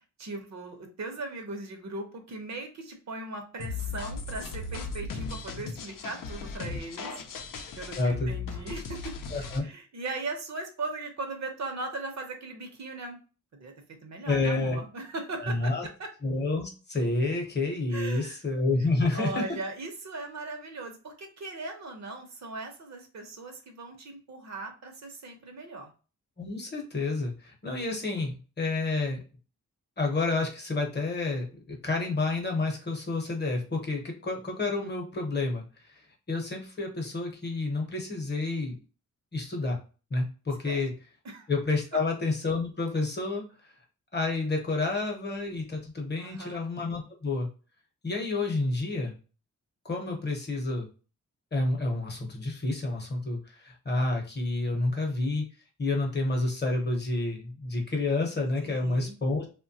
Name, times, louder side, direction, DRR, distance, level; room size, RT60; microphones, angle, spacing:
voice 1, 0.2-7.2 7.8-13.2 13.6-13.7 14.0-16.1 17.9-18.4 19.1-25.9 40.6-40.8 41.2-41.5 46.2-46.6 58.6-59.2, right 3 dB, 60° right, 4 dB, 0.7 m, -38 dB
sound 1, 3.6-9.6, left 4 dB, 90° left, 0.5 m, -37 dB
voice 2, 8.0-8.3 9.3-9.6 14.2-14.8 15.4-15.9 16.2-19.4 26.4-29.2 30.0-35.7 36.3-38.7 39.3-39.8 40.1-40.9 41.5-43.4 44.1-47.5 48.0-49.2 49.8-50.9 51.5-55.4 55.8-59.5, left 2 dB, 35° left, 1 dB, 0.7 m, -29 dB
3.1 x 2.2 x 2.6 m, 0.35 s
wide cardioid pair, 155°, 32 cm